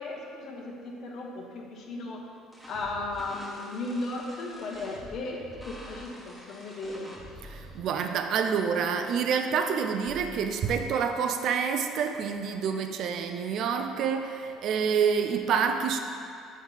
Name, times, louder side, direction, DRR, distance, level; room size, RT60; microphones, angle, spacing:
voice 1, 0.0-2.2 2.7-7.2, left 2 dB, 60° left, -1 dB, 1.1 m, -36 dB
sound 1, 2.5-7.8, equal, ahead, 1.4 m, -47 dB
voice 2, 7.5-16.0, right 6 dB, 60° right, 6 dB, 0.5 m, -27 dB
7.2 x 3.2 x 5.6 m, 2.5 s
supercardioid pair, 85°, 0 cm